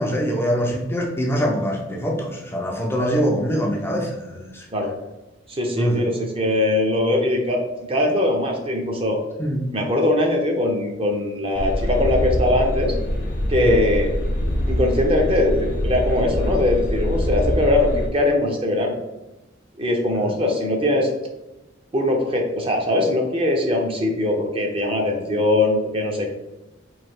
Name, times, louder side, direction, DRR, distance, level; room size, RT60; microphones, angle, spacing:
voice 1, 0.0-4.7 5.8-6.1 9.4-9.8 13.6-13.8 20.2-20.3, equal, 15° left, -1 dB, 0.4 m, -24 dB
voice 2, 5.5-9.2 9.7-12.9 13.5-14.1 14.7-18.9 19.8-21.1 21.9-26.3, left 1 dB, 30° right, 2 dB, 0.6 m, -21 dB
sound 1, 11.5-18.1, equal, 60° left, 0.6 m, -24 dB
3.1 x 2.7 x 4.3 m, 0.98 s
head